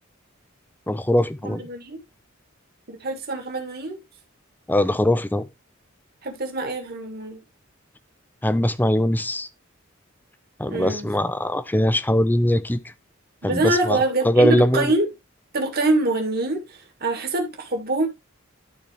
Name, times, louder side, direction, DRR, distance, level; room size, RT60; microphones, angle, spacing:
voice 1, 0.9-1.6 4.7-5.5 8.4-9.5 10.6-12.8 13.4-14.0 14.2-14.9, left 1 dB, 10° left, 0.6 m, -21 dB
voice 2, 1.4-2.0 2.9-4.0 6.2-7.4 10.7-11.1 13.4-15.1 15.5-18.1, right 2 dB, 50° right, 2.0 m, -25 dB
12.0 x 4.3 x 3.3 m
head